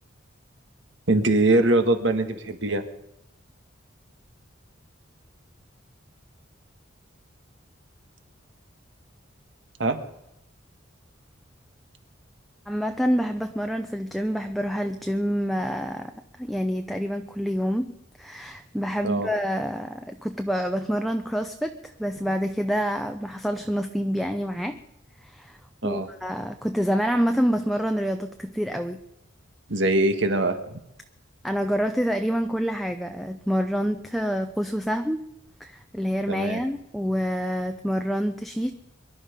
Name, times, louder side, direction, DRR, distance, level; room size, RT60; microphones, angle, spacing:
voice 1, 1.1-2.8 9.8-10.0 19.0-19.3 25.8-26.1 29.7-30.8 36.3-36.6, right 2 dB, 65° right, 8 dB, 1.7 m, -22 dB
voice 2, 12.7-16.1 16.4-17.9 18.2-24.8 25.3-25.6 25.8-29.0 31.4-35.2 35.6-38.7, equal, ahead, 5 dB, 0.6 m, -27 dB
23.5 x 11.5 x 5.2 m, 0.81 s
head